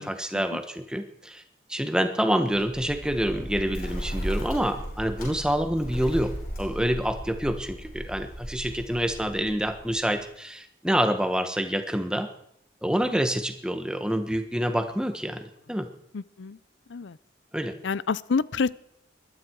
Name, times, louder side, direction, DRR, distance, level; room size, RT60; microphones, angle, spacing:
voice 1, 0.0-1.4 1.7-12.3 12.8-15.9 17.5-17.8, equal, 5° right, 8 dB, 1.3 m, -27 dB
Bird, 2.5-10.2, equal, 50° left, 7.0 m, -36 dB
voice 2, 16.1-16.6 16.9-17.2 17.8-18.7, left 5 dB, 85° left, 19 dB, 0.5 m, -27 dB
21.0 x 12.5 x 4.7 m, 0.75 s
head